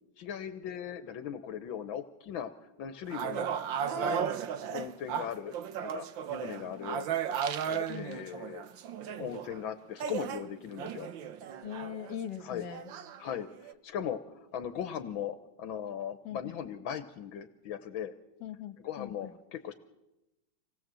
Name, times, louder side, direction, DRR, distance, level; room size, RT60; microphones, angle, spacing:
voice 1, 0.2-3.5 3.9-4.3 4.7-5.6 5.8-7.0 7.4-8.7 9.2-11.1 12.4-12.7 13.2-18.1 18.8-19.7, left 9 dB, 80° left, 9 dB, 1.8 m, -39 dB
sound 1, 3.1-9.6 10.0-12.4 12.7-13.7, right 8 dB, 70° right, 1.7 m, -35 dB
voice 2, 6.7-7.1 7.9-8.2 11.6-12.9 16.2-16.5 18.4-19.3, left 9 dB, 60° left, 9 dB, 2.0 m, -41 dB
26.0 x 19.0 x 7.6 m, 0.96 s
omnidirectional pair, 2.2 m